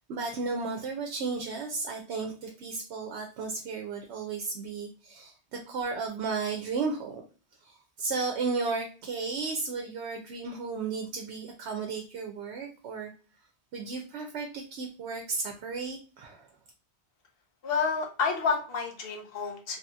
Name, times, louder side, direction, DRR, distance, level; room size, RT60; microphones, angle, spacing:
voice 1, 0.1-7.2 7.6-13.1 13.7-16.5, right 4 dB, 85° right, 3 dB, 0.9 m, -34 dB
voice 2, 17.6-19.8, left 5 dB, 60° left, 2 dB, 1.0 m, -29 dB
3.1 x 2.8 x 2.3 m, 0.36 s
omnidirectional pair, 1.1 m